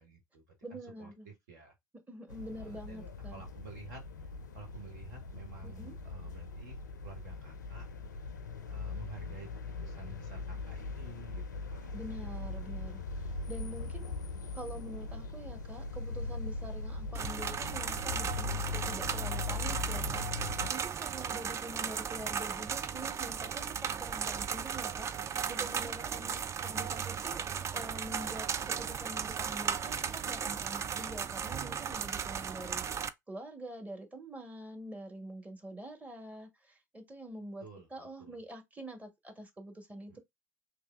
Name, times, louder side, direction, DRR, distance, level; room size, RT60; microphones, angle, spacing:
voice 1, 0.0-0.4 0.7-1.7 2.5-4.0 4.5-6.7 7.0-7.9 8.6-12.0 37.6-38.4 40.1-40.2, right 5 dB, 75° right, 1.2 m, -51 dB
voice 2, 0.6-1.3 2.1-3.3 5.6-6.0 11.9-14.1 14.5-25.1 25.5-27.5 27.7-37.6 37.9-40.2, right 1 dB, 15° right, 1.0 m, -46 dB
sound 1, 2.3-20.7, left 4 dB, 85° left, 0.4 m, -40 dB
sound 2, 17.1-33.1, right 7 dB, 30° right, 0.3 m, -36 dB
3.2 x 2.9 x 2.3 m
figure-of-eight pair, 65°, 9 cm